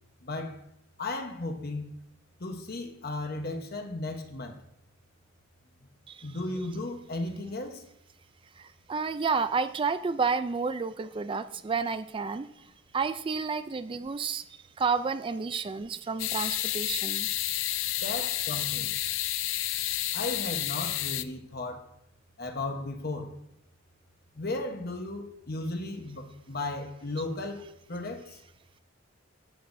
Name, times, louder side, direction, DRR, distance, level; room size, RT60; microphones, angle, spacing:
voice 1, 0.2-0.6 1.0-1.9 2.4-4.6 6.2-7.9 18.0-18.9 20.1-21.9 22.4-23.4 24.3-28.4, left 2 dB, 50° left, 1.1 m, -35 dB
voice 2, 8.6-12.7 12.9-17.3, right 5 dB, 25° right, 0.3 m, -31 dB
sound 1, 16.2-21.2, left 14 dB, 75° left, 0.4 m, -30 dB
12.0 x 8.7 x 2.7 m
head